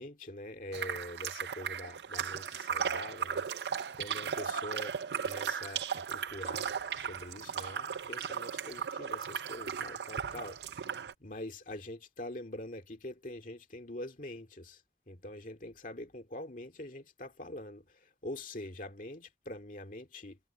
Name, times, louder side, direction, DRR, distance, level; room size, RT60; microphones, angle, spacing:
voice 1, 0.0-10.6 10.8-14.8 15.1-20.4, left 1 dB, 45° left, 2.3 m, -44 dB
sound 1, 0.7-11.1, right 7 dB, 70° right, 0.5 m, -36 dB
head